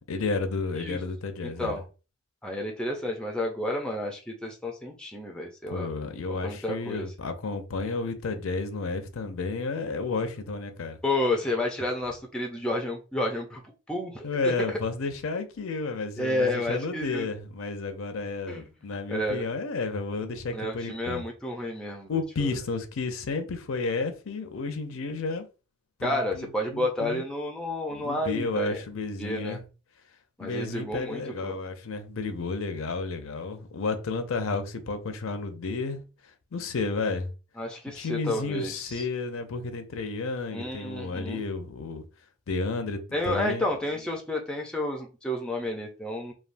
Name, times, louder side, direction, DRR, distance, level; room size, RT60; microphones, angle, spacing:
voice 1, 0.1-1.7 5.7-11.0 14.2-21.2 22.1-25.5 26.0-27.2 27.9-29.6 30.4-36.0 36.5-37.3 37.9-42.0 42.5-43.7, left 3 dB, 70° left, 0.5 m, -32 dB
voice 2, 1.4-1.8 2.4-5.9 6.3-7.1 11.0-13.6 13.9-14.5 16.2-17.3 18.5-18.7 19.1-19.5 20.5-22.1 22.4-22.6 26.0-28.8 29.2-29.6 30.4-31.5 37.6-39.0 40.5-41.4 43.1-46.3, left 1 dB, 5° left, 0.4 m, -31 dB
3.3 x 2.2 x 2.5 m
head